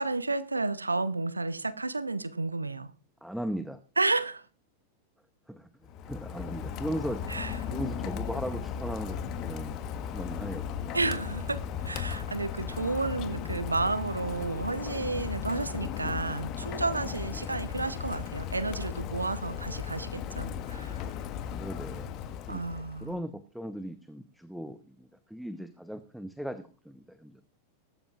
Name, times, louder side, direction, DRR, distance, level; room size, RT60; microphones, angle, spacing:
voice 1, 0.0-2.9 4.0-4.5 7.3-7.5 10.9-21.0 22.5-23.1, right 3 dB, 80° right, 0.7 m, -31 dB
voice 2, 3.2-3.8 5.5-7.4 7.7-11.4 17.3-17.6 21.5-22.6 23.0-27.4, equal, ahead, 0.8 m, -38 dB
Rain, 5.8-23.1, left 8 dB, 40° left, 1.3 m, -36 dB
19.5 x 12.0 x 2.4 m
figure-of-eight pair, 90°, 0 cm